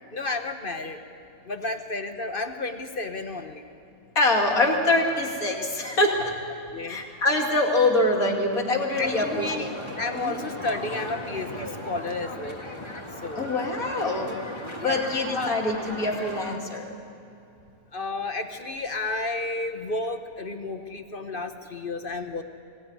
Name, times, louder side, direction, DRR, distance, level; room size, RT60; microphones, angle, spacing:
voice 1, 0.1-1.0 1.4-3.6 6.7-7.0 9.0-12.6 13.2-13.6 14.8-15.0 15.3-15.6 16.5-16.6 17.9-22.4, left 3 dB, 40° left, 7 dB, 1.2 m, -32 dB
voice 2, 4.1-6.3 6.8-9.7 10.1-10.3 13.4-14.4 14.8-16.8, left 2 dB, 70° left, 0 dB, 3.2 m, -24 dB
sound 1, 8.9-16.6, left 1 dB, 20° left, 1.8 m, -37 dB
23.0 x 18.0 x 9.7 m, 2.6 s
omnidirectional pair, 1.6 m